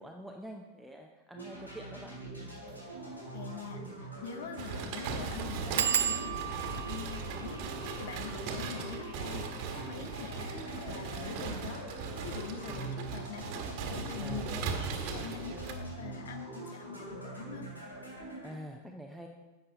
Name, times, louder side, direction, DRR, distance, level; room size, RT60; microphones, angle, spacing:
voice 1, 0.0-2.2 12.7-13.0 14.2-14.7 18.4-19.3, equal, ahead, 1 dB, 0.8 m, -46 dB
sound 1, 1.3-18.5, right 1 dB, 80° left, 3.0 m, -44 dB
sound 2, 2.6-2.8 3.2-3.3 3.5-3.6 4.2-4.4 4.7-4.8 5.8-11.0 11.7-12.2 12.6-12.9 13.2-13.3, right 10 dB, 60° right, 0.5 m, -37 dB
voice 2, 3.3-7.6 8.0-9.5 9.9-10.5 10.9-11.9 12.2-13.5 13.9-14.5 14.9-17.7, left 7 dB, 60° left, 9 dB, 0.7 m, -44 dB
sound 3, 4.6-15.7, right 5 dB, 45° right, 1.4 m, -39 dB
11.0 x 8.1 x 3.9 m, 1.2 s
figure-of-eight pair, 90°, 0 cm